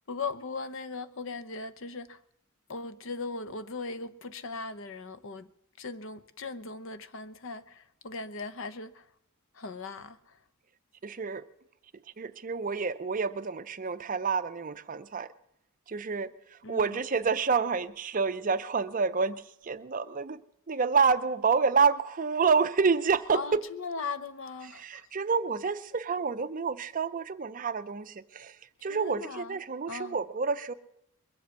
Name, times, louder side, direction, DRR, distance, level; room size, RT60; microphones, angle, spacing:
voice 1, 0.1-2.2 2.7-5.5 5.8-9.1 9.5-10.4 16.6-17.0 23.3-25.1 28.9-29.6 29.9-30.2, left 4 dB, 60° left, 0.7 m, -39 dB
voice 2, 11.0-11.5 12.2-15.3 15.9-20.4 20.7-23.6 24.7-30.7, right 5 dB, 40° right, 0.5 m, -28 dB
21.5 x 7.7 x 8.1 m
head